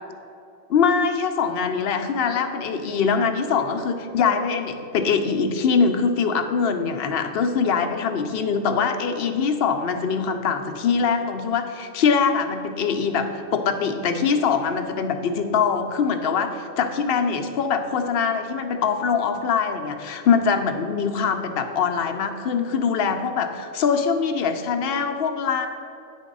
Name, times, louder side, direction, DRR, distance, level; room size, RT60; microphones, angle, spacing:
voice 1, 0.7-25.7, left 6 dB, 65° left, 6 dB, 0.8 m, -23 dB
9.1 x 3.6 x 5.2 m, 2.7 s
omnidirectional pair, 1.2 m